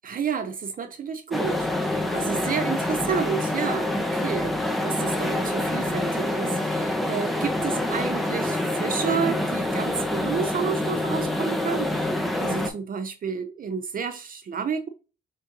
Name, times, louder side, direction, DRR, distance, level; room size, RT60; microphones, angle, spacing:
voice 1, 0.0-4.6 4.8-12.1 12.3-14.9, right 6 dB, 45° right, 0.6 m, -30 dB
sound 1, 1.3-12.7, left 1 dB, ahead, 0.7 m, -26 dB
5.7 x 2.6 x 3.0 m
cardioid pair, 90°, 20 cm